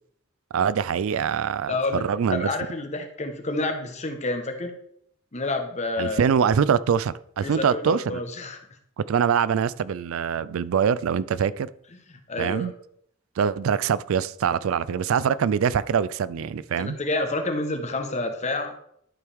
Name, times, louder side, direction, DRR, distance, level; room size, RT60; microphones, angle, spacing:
voice 1, 0.5-2.5 6.0-8.2 9.0-11.7 12.4-12.7 13.4-17.0, right 7 dB, 85° right, 0.4 m, -24 dB
voice 2, 1.7-2.0 2.3-4.7 5.3-6.3 7.4-8.6 12.1-12.7 16.8-18.7, left 2 dB, 35° left, 1.1 m, -29 dB
11.5 x 4.7 x 3.5 m
head